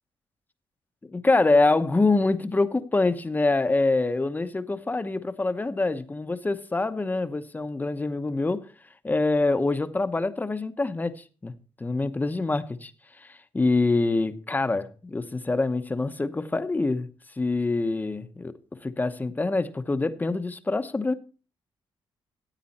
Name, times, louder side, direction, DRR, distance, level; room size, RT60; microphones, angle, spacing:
voice 1, 1.0-8.7 9.0-11.1 11.4-11.5 11.8-12.9 13.2-17.1 17.4-18.5 18.8-21.1, left 3 dB, 20° left, 0.9 m, -25 dB
14.0 x 9.1 x 4.2 m
cardioid pair, 120°, 10 cm